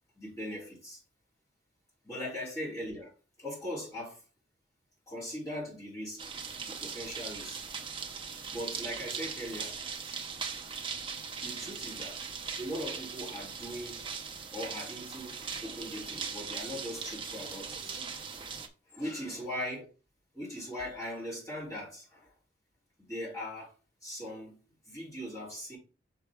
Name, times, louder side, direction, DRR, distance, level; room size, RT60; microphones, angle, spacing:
voice 1, 0.1-1.0 2.0-3.1 3.4-4.2 5.1-6.2 6.6-7.6 8.5-9.8 11.4-12.2 12.6-14.1 14.5-18.0 18.9-19.9 20.3-22.3 23.0-23.7 24.0-24.6 24.8-25.8, equal, 20° left, 3.3 m, -40 dB
sound 1, 6.2-18.7, right 5 dB, 25° right, 0.7 m, -40 dB
6.2 x 4.6 x 3.5 m
head